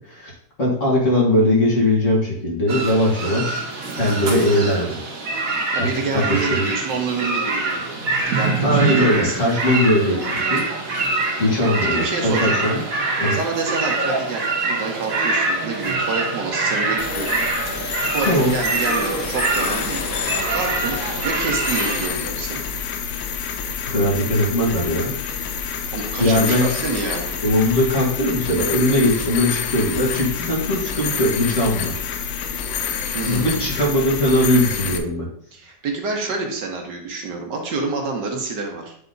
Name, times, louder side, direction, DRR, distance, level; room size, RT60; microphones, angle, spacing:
voice 1, 0.6-3.7 3.9-5.0 5.8-6.6 8.6-10.9 11.4-12.9 13.2-13.4 18.2-18.5 23.8-25.1 26.2-26.7 27.4-31.9 33.3-35.3, left 1 dB, 40° left, -4 dB, 2.3 m, -20 dB
sound 1, 2.7-22.1, right 3 dB, 50° right, 1.4 m, -24 dB
voice 2, 5.7-7.8 8.3-9.4 11.8-12.6 13.3-17.4 18.1-20.0 20.5-22.6 25.9-27.3 33.1-33.9 35.5-39.0, right 4 dB, 65° right, 1 dB, 1.7 m, -27 dB
sound 2, 17.0-35.0, left 7 dB, 80° left, 1.4 m, -28 dB
8.9 x 3.5 x 3.9 m, 0.64 s
omnidirectional pair, 2.1 m